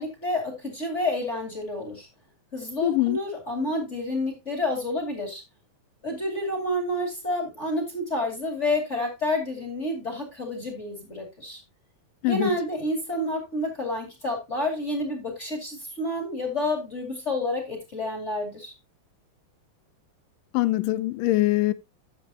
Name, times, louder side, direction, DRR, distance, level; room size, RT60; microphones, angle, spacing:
voice 1, 0.0-2.1 2.5-5.4 6.0-11.6 12.3-18.7, left 1 dB, 25° left, 2.0 m, -29 dB
voice 2, 2.8-3.2 12.2-12.6 20.5-21.7, left 18 dB, 80° left, 2.2 m, -23 dB
11.5 x 7.3 x 2.8 m
omnidirectional pair, 4.1 m